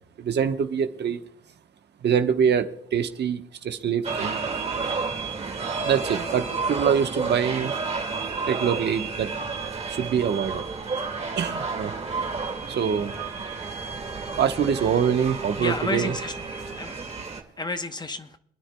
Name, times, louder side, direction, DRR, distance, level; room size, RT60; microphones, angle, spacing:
voice 1, 0.2-1.2 2.0-4.4 5.8-7.7 8.5-9.3 9.9-10.6 11.3-11.9 12.7-13.1 14.4-16.1, right 7 dB, 60° right, 7 dB, 1.2 m, -24 dB
sound 1, 4.0-17.4, right 4 dB, 30° right, 2.1 m, -31 dB
voice 2, 15.6-17.0 17.6-18.4, left 2 dB, 20° left, 9 dB, 1.0 m, -31 dB
27.0 x 10.0 x 2.3 m, 0.71 s
cardioid pair, 90°, 20 cm